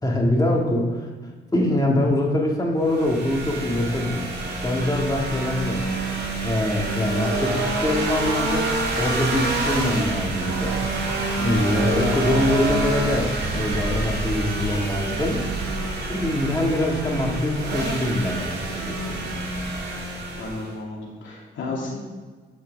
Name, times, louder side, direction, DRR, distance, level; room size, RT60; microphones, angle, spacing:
voice 1, 0.0-1.1 1.5-4.3 4.6-6.0 6.4-8.7 9.0-10.8 11.4-15.4 16.1-19.2, left 1 dB, 20° left, -1 dB, 2.0 m, -24 dB
sound 1, 2.9-20.7, right 2 dB, 55° right, 2.7 m, -27 dB
voice 2, 20.4-22.0, left 2 dB, 70° left, -4 dB, 2.9 m, -33 dB
10.5 x 6.5 x 3.5 m, 1.4 s
cardioid pair, 90°, 20 cm